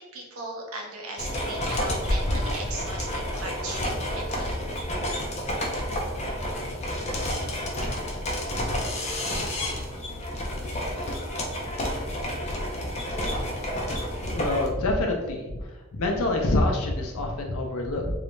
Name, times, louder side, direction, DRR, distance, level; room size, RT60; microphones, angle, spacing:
voice 1, 0.0-4.6, right 2 dB, 75° right, 0 dB, 0.6 m, -38 dB
sound 1, 1.2-14.7, left 1 dB, 30° left, 0.3 m, -30 dB
voice 2, 14.3-15.5 15.9-18.1, left 2 dB, 85° left, 2 dB, 0.5 m, -26 dB
2.3 x 2.0 x 3.0 m, 1.1 s
head